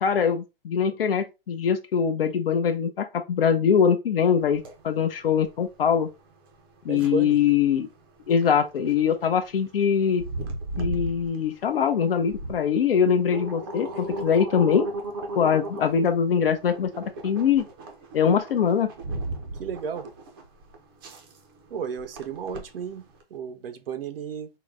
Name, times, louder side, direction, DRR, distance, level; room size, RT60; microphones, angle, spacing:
voice 1, 0.0-6.1 6.8-7.9 8.3-10.2 10.8-14.9 15.4-17.7 18.1-18.9, left 7 dB, 65° left, 0.6 m, -23 dB
sound 1, 4.4-23.2, right 2 dB, 25° right, 0.5 m, -37 dB
voice 2, 6.9-7.4 19.6-20.1 21.7-24.5, right 6 dB, 65° right, 0.6 m, -33 dB
3.8 x 2.1 x 3.5 m
hypercardioid pair, 155°, 31 cm